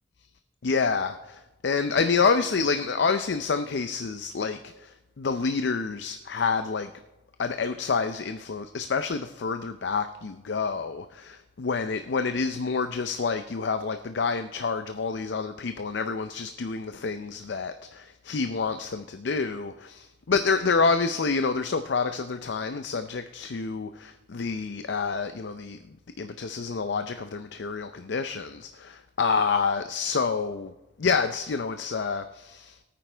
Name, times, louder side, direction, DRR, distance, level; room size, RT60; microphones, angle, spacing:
voice 1, 0.6-6.9 7.4-30.7 31.0-32.8, left 5 dB, 70° left, 9 dB, 0.5 m, -28 dB
20.5 x 9.2 x 3.4 m, 1.0 s
head